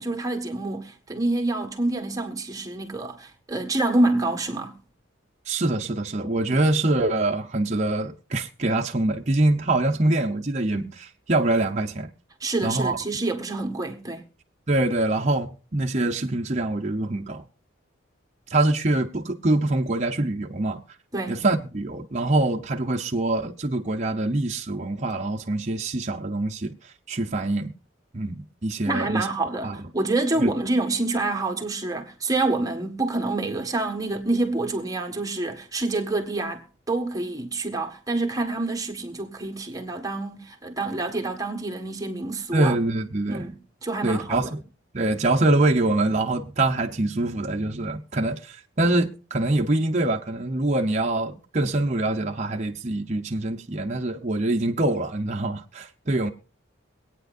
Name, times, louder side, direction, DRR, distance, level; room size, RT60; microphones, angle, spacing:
voice 1, 0.0-4.8 12.4-14.2 21.1-21.4 28.9-42.7 43.3-44.5, right 2 dB, 20° right, 1.6 m, -27 dB
voice 2, 5.5-12.1 12.6-13.0 14.7-17.4 18.5-20.8 21.3-26.7 27.1-27.7 28.1-29.3 29.6-29.9 30.4-30.5 42.5-43.5 44.0-44.6 44.9-56.3, right 2 dB, 35° right, 0.8 m, -24 dB
24.5 x 9.2 x 2.6 m
head